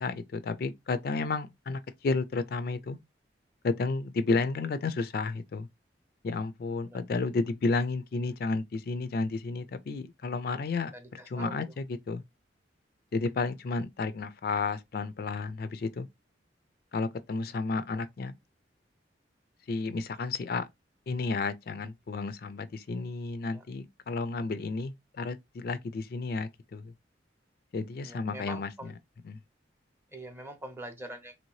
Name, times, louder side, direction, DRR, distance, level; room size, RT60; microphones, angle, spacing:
voice 1, 0.0-3.0 3.6-5.7 6.2-10.9 11.3-12.2 13.1-16.1 16.9-18.4 19.7-20.7 21.1-26.9 27.7-28.7 29.3-29.4, left 3 dB, 55° left, 0.4 m, -32 dB
voice 2, 10.9-11.7 17.4-17.6 23.5-23.7 28.0-28.9 30.1-31.4, right 1 dB, 15° right, 0.6 m, -44 dB
3.0 x 2.7 x 3.0 m
head